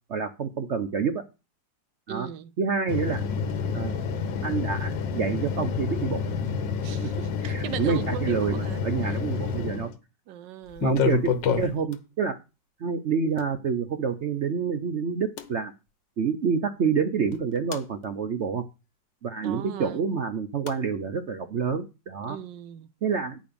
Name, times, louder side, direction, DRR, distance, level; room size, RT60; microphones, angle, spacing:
voice 1, 0.1-1.2 2.1-2.3 2.6-3.2 3.7-4.0 4.4-6.2 7.0-7.1 7.4-9.9 10.8-12.4 12.8-15.7 16.2-18.6 19.2-22.4 23.0-23.4, right 6 dB, 55° right, 0.8 m, -28 dB
voice 2, 2.1-2.5 6.8-9.2 10.3-11.0 19.4-20.0 22.3-22.9, right 11 dB, 80° right, 1.4 m, -38 dB
sound 1, 2.9-9.9 10.7-11.9 13.4-13.5 15.4-15.5 17.3-17.8 20.7-20.8, left 6 dB, 85° left, 1.8 m, -28 dB
10.0 x 5.2 x 6.8 m
omnidirectional pair, 1.9 m